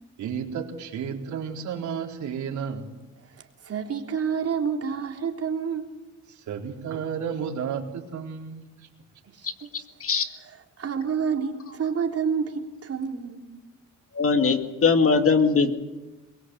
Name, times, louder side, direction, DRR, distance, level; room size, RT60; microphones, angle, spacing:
voice 1, 0.2-3.0 6.3-8.9, right 7 dB, 70° right, 0 dB, 4.3 m, -32 dB
voice 2, 3.6-5.9 9.4-9.7 10.8-13.4, right 6 dB, 50° right, 3 dB, 3.6 m, -28 dB
voice 3, 14.1-15.8, left 4 dB, 45° left, 7 dB, 2.3 m, -20 dB
23.0 x 22.0 x 8.0 m, 1.1 s
cardioid pair, 90°, 30 cm